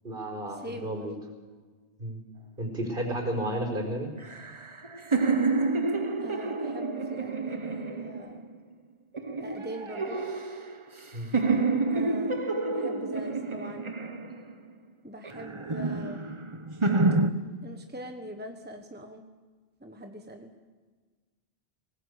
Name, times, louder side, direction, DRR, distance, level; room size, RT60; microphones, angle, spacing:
voice 1, 0.0-1.1 2.0-2.2 2.6-4.1 11.1-11.3, right 1 dB, 55° right, 3 dB, 4.7 m, -32 dB
voice 2, 0.6-1.1 6.2-8.4 9.4-10.2 11.9-13.9 15.0-16.3 17.6-19.2 19.8-20.5, equal, 10° right, 4 dB, 1.3 m, -42 dB
sound 1, 4.2-8.5 9.1-11.0 11.3-14.7 15.2-17.3, right 3 dB, 30° right, 1.1 m, -29 dB
20.5 x 19.0 x 8.3 m, 1.4 s
omnidirectional pair, 1.1 m